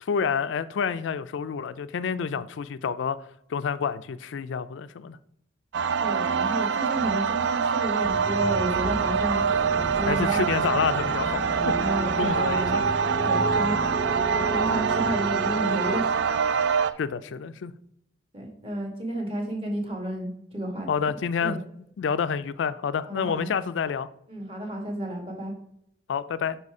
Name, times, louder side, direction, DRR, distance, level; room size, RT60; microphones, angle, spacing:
voice 1, 0.0-3.2 3.5-5.2 10.1-11.8 12.2-12.8 17.0-17.7 20.9-21.6 22.0-24.1 26.1-26.6, left 6 dB, 80° left, 0.4 m, -28 dB
sound 1, 5.7-16.9, right 6 dB, 75° right, 0.3 m, -25 dB
voice 2, 6.0-10.6 11.7-12.8 13.2-16.2 18.3-21.6 23.1-23.5 24.3-25.5, right 1 dB, 30° right, 1.4 m, -32 dB
sound 2, 8.0-15.9, equal, 10° left, 0.6 m, -34 dB
5.6 x 4.1 x 4.7 m
head